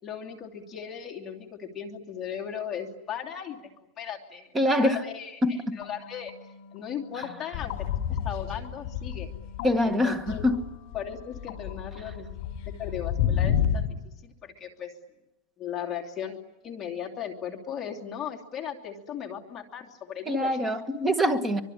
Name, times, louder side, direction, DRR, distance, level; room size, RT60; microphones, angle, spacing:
voice 1, 0.0-3.7 4.0-5.4 5.8-6.3 6.7-7.7 8.2-9.3 9.8-10.4 10.9-12.4 12.8-14.9 15.6-16.4 16.6-20.6, left 8 dB, 20° left, 2.8 m, -37 dB
voice 2, 4.5-5.0 5.4-5.8 7.2-7.3 9.6-10.7 12.0-12.1 20.2-21.6, left 1 dB, 10° right, 1.8 m, -25 dB
sound 1, 5.8-13.4, left 8 dB, 60° left, 2.4 m, -46 dB
sound 2, 7.5-9.8 10.1-13.9, left 9 dB, 40° left, 5.2 m, -30 dB
24.5 x 24.0 x 10.0 m
supercardioid pair, 165°, 0 cm